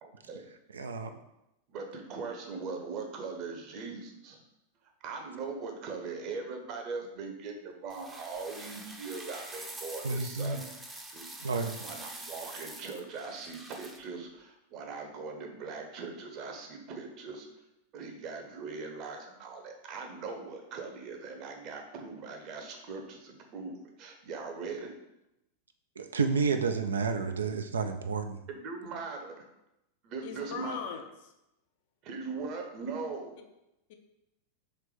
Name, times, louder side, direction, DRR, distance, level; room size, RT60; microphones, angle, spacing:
voice 1, 0.0-0.4 1.7-4.4 5.0-10.6 11.1-11.5 11.8-17.5 17.9-24.9 28.5-29.4 30.0-30.8 32.0-33.4, right 4 dB, 40° right, 3 dB, 0.8 m, -40 dB
voice 2, 0.7-1.1 10.0-10.6 11.4-11.8 26.0-28.4, right 4 dB, 70° right, 7 dB, 0.3 m, -30 dB
sound 1, 7.9-14.0, right 2 dB, 10° right, 0.6 m, -45 dB
voice 3, 30.2-31.3 33.9-34.0, left 6 dB, 50° left, 5 dB, 0.5 m, -39 dB
3.3 x 3.3 x 4.8 m, 0.89 s
figure-of-eight pair, 90°, 0 cm